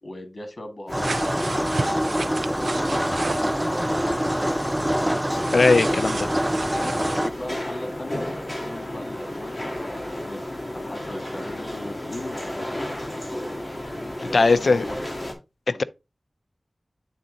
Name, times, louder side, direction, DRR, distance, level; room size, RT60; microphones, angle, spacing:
voice 1, 0.0-4.7 6.7-8.3 8.6-10.4 10.7-12.7 14.2-15.0 15.7-15.8, left 1 dB, 55° left, 1.8 m, -39 dB
sound 1, 0.9-15.3, left 1 dB, 25° left, 2.2 m, -33 dB
sound 2, 0.9-7.3, equal, 10° right, 0.5 m, -25 dB
sound 3, 1.0-3.5 5.4-7.2, right 3 dB, 85° right, 0.3 m, -34 dB
voice 2, 5.5-6.3 14.3-14.8 15.7-15.8, left 3 dB, 80° left, 0.4 m, -19 dB
8.6 x 3.9 x 3.9 m
wide cardioid pair, 65°, 0 cm